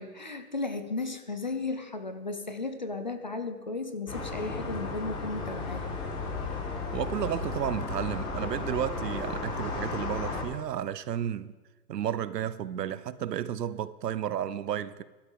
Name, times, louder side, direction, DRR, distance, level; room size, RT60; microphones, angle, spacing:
voice 1, 0.0-5.9, left 3 dB, 30° left, 0.5 m, -35 dB
sound 1, 4.1-10.4, left 3 dB, 60° left, 4.7 m, -34 dB
voice 2, 6.9-11.5 11.9-15.0, right 10 dB, 85° right, 0.8 m, -32 dB
15.0 x 12.0 x 3.8 m
hypercardioid pair, 175°, 47 cm